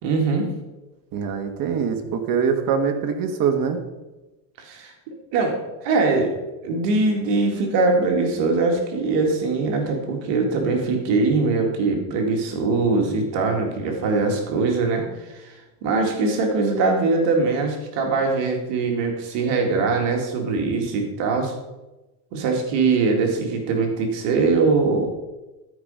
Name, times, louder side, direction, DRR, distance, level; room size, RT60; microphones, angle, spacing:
voice 1, 0.0-0.5 4.6-6.3 6.6-21.5 22.3-25.1, right 3 dB, 60° right, 2 dB, 2.2 m, -22 dB
voice 2, 1.1-3.8, right 6 dB, 45° right, 6 dB, 1.5 m, -23 dB
12.0 x 5.2 x 5.5 m, 1.1 s
supercardioid pair, 120°, 47 cm